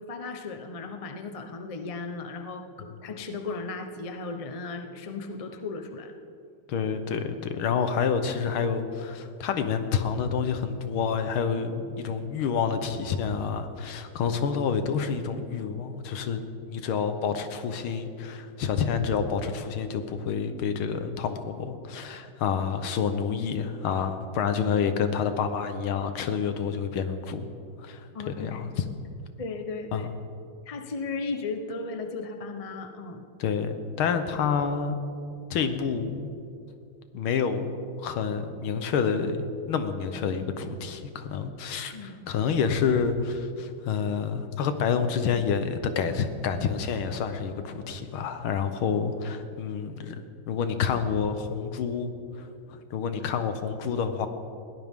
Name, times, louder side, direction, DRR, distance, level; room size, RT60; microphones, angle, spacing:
voice 1, 0.1-6.1 28.1-28.6 29.4-30.1 30.7-33.3 34.0-34.2 41.9-42.1, left 3 dB, 50° left, 5 dB, 0.4 m, -36 dB
voice 2, 6.7-27.5 27.8-28.7 29.9-30.1 33.4-35.0 35.5-36.3 37.1-37.7 38.0-52.1 52.4-54.3, left 6 dB, 75° left, 9 dB, 1.8 m, -28 dB
21.0 x 16.5 x 3.7 m, 2.6 s
omnidirectional pair, 2.3 m